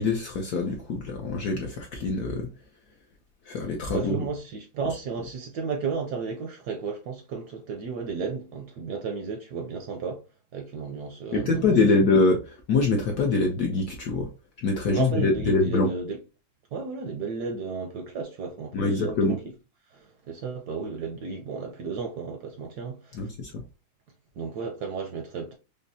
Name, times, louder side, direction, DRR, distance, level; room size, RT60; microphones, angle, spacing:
voice 1, 0.0-2.5 3.5-4.2 11.3-14.3 14.6-15.9 18.7-19.4 23.2-23.6, left 3 dB, 65° left, 1.0 m, -24 dB
voice 2, 3.9-10.2 10.5-11.8 14.9-16.2 16.7-19.4 19.9-23.3 24.4-25.5, right 5 dB, 70° right, 1.0 m, -33 dB
5.2 x 2.0 x 2.7 m
omnidirectional pair, 2.2 m